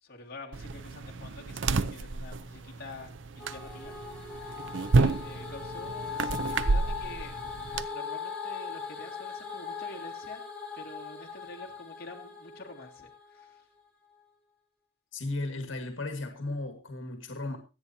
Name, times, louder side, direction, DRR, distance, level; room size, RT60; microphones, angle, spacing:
voice 1, 0.0-3.9 4.9-7.4 7.9-10.4 10.7-13.6, left 2 dB, 50° left, 0 dB, 2.4 m, -47 dB
sound 1, 0.5-7.9, right 3 dB, 70° right, 0.6 m, -30 dB
sound 2, 3.4-13.6, left 6 dB, 5° left, 3.1 m, -40 dB
voice 2, 15.1-17.6, left 2 dB, 75° left, 6 dB, 1.8 m, -35 dB
24.5 x 8.6 x 2.8 m, 0.31 s
head